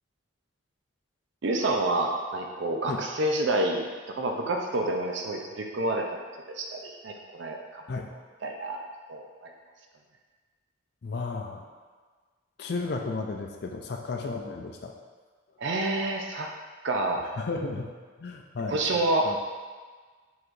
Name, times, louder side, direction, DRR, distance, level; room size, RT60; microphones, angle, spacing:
voice 1, 1.4-6.2 6.6-7.8 8.4-8.8 9.1-9.5 15.6-16.5 16.8-17.2 18.7-19.4, right 2 dB, 70° right, 2 dB, 0.5 m, -28 dB
voice 2, 11.0-11.6 12.6-14.9 17.3-17.9 18.2-19.4, left 3 dB, 55° left, 2 dB, 0.4 m, -34 dB
4.7 x 3.9 x 2.6 m, 1.5 s
head